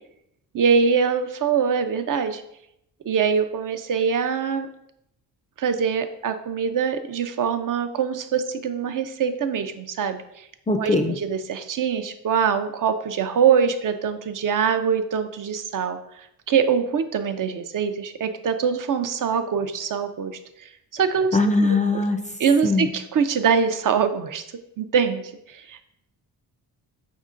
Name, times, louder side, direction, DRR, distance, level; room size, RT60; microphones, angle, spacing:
voice 1, 0.5-2.4 3.1-4.7 5.6-10.5 10.8-21.7 22.4-24.4 24.8-25.9, right 6 dB, 50° right, 8 dB, 0.5 m, -23 dB
voice 2, 10.7-11.1 21.3-22.2 22.6-22.9, left 2 dB, 20° left, 6 dB, 0.4 m, -20 dB
5.3 x 3.6 x 2.5 m, 0.79 s
cardioid pair, 70°, 41 cm